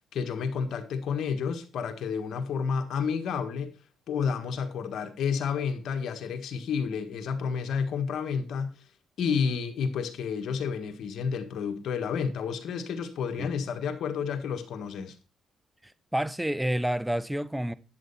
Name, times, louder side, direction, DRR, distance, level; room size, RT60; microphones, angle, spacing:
voice 1, 0.1-3.7 4.1-8.8 9.2-15.1, left 6 dB, 70° left, 1.6 m, -30 dB
voice 2, 15.8-17.7, right 1 dB, 5° right, 0.7 m, -29 dB
10.5 x 7.8 x 4.2 m
cardioid pair, 90°, 0 cm